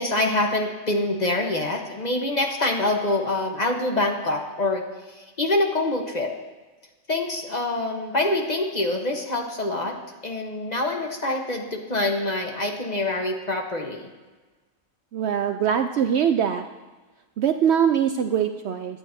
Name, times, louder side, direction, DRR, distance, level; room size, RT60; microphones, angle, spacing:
voice 1, 0.0-4.8 5.1-6.3 7.1-10.0 10.2-14.1, left 2 dB, 35° left, 1 dB, 1.2 m, -25 dB
voice 2, 15.1-16.6 17.4-19.0, right 8 dB, 65° right, 7 dB, 0.7 m, -22 dB
23.0 x 8.8 x 2.7 m, 1.3 s
omnidirectional pair, 1.4 m